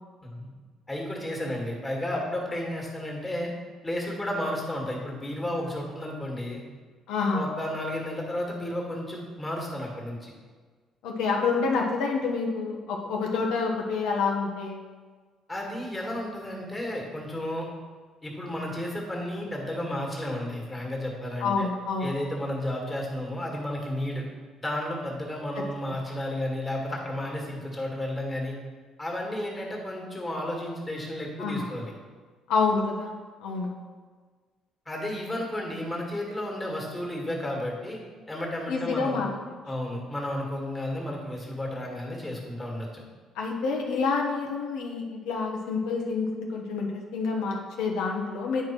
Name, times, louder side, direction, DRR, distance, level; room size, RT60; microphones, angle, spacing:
voice 1, 0.2-0.5 0.9-3.5 3.8-6.6 7.3-10.3 15.5-17.7 18.2-21.7 22.0-24.2 24.6-28.5 29.0-31.9 34.9-38.0 38.3-39.2 39.7-43.0, left 1 dB, 15° left, -1 dB, 1.8 m, -32 dB
voice 2, 7.1-7.5 11.0-14.8 21.4-22.2 25.9-26.0 31.4-31.7 32.5-33.1 33.4-33.7 38.7-39.3 43.3-48.6, left 4 dB, 85° left, 0 dB, 1.0 m, -28 dB
9.2 x 4.8 x 4.5 m, 1.5 s
cardioid pair, 120°, 0 cm